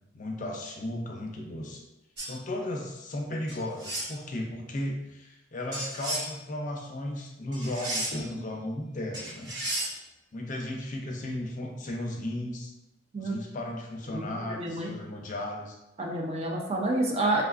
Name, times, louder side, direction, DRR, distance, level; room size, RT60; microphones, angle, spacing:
voice 1, 0.1-1.8 2.3-9.5 10.3-12.7 13.2-15.8, left 1 dB, 45° left, 1 dB, 0.5 m, -35 dB
sound 1, 2.2-2.3 3.5-4.1 5.7-6.3 7.5-8.3 9.1-9.9, right 1 dB, 75° right, 1.2 m, -33 dB
voice 2, 14.1-14.9 16.0-17.4, right 2 dB, 35° right, 0 dB, 0.4 m, -29 dB
3.4 x 2.3 x 2.4 m, 0.94 s
head